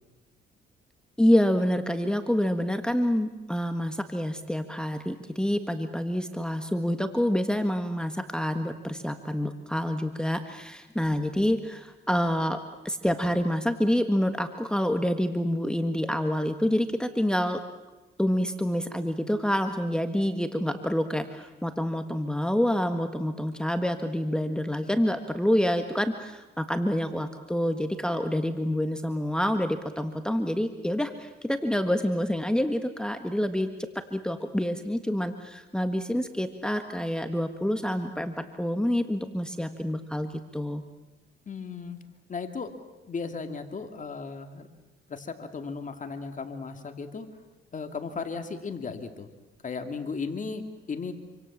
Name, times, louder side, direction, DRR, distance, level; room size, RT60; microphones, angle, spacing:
voice 1, 1.2-12.6 12.8-17.6 18.2-40.8, equal, 5° left, 7 dB, 1.6 m, -27 dB
voice 2, 41.5-42.0 42.3-42.7 43.1-44.7 45.1-47.3 47.7-49.3 49.6-51.1, left 5 dB, 40° left, 6 dB, 2.5 m, -35 dB
27.5 x 25.5 x 7.4 m, 1.1 s
cardioid pair, 90°, 20 cm